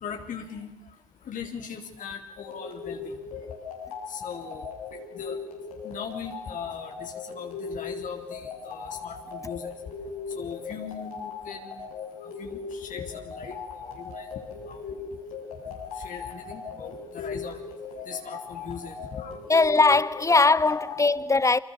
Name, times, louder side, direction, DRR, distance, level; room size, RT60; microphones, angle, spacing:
voice 1, 0.0-0.7 1.3-3.1 4.1-4.7 5.1-5.4 5.8-9.7 10.4-11.9 12.2-14.3 14.7-14.8 16.0-17.6 18.1-19.4, left 6 dB, 45° left, 3.7 m, -39 dB
sound 1, 2.4-21.1, left 5 dB, 80° left, 7.1 m, -38 dB
voice 2, 19.5-21.6, left 3 dB, 15° left, 1.2 m, -20 dB
27.5 x 26.5 x 6.8 m
hypercardioid pair, 55°, 18 cm